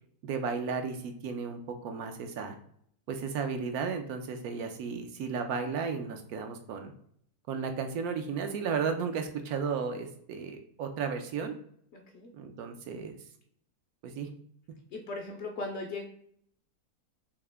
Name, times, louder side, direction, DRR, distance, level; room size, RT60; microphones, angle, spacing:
voice 1, 0.2-2.5 3.1-6.9 7.5-11.5 12.3-13.2 14.0-14.3, right 5 dB, 75° right, 6 dB, 1.1 m, -34 dB
voice 2, 11.9-12.3 14.9-16.0, left 2 dB, 60° left, 1 dB, 0.7 m, -38 dB
3.6 x 2.8 x 3.2 m, 0.64 s
omnidirectional pair, 1.6 m